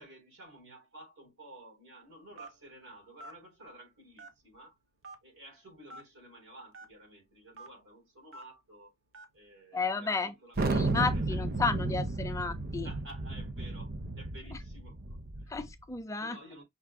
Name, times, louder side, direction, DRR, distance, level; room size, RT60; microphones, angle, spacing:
voice 1, 0.0-4.8 5.2-8.9 9.3-10.7 11.1-11.4 12.8-15.6 16.1-16.6, right 1 dB, 90° right, 3.7 m, -53 dB
Telephone, 2.4-2.7 3.2-3.4 4.2-4.6 5.0-5.2 5.9-6.1 6.7-6.9 7.5-7.7 8.3-8.4 9.1-9.4 10.1-10.3, right 2 dB, 65° right, 0.9 m, -47 dB
voice 2, 9.7-12.9 15.5-16.4, left 4 dB, 15° left, 0.4 m, -33 dB
Thunder, 10.6-15.7, right 3 dB, 45° right, 0.6 m, -33 dB
5.8 x 2.1 x 3.6 m
head